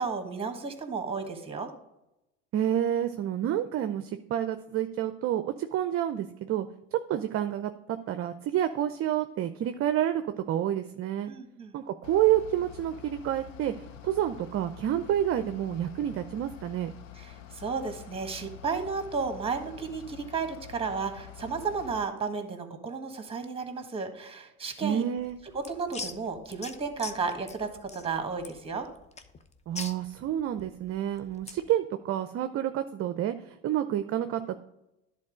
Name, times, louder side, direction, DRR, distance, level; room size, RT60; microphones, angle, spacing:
voice 1, 0.0-1.7 11.3-11.8 17.1-25.0 25.5-28.9, right 5 dB, 15° right, 6 dB, 1.6 m, -33 dB
voice 2, 2.5-11.3 11.7-16.9 24.8-25.4 29.7-34.6, right 11 dB, 40° right, 10 dB, 0.6 m, -29 dB
Bus / Idling, 12.0-22.0, left 11 dB, 90° left, 0.7 m, -47 dB
sound 1, 25.2-31.7, left 4 dB, 20° left, 0.7 m, -43 dB
10.5 x 4.0 x 4.9 m, 0.91 s
hypercardioid pair, 85°, 36 cm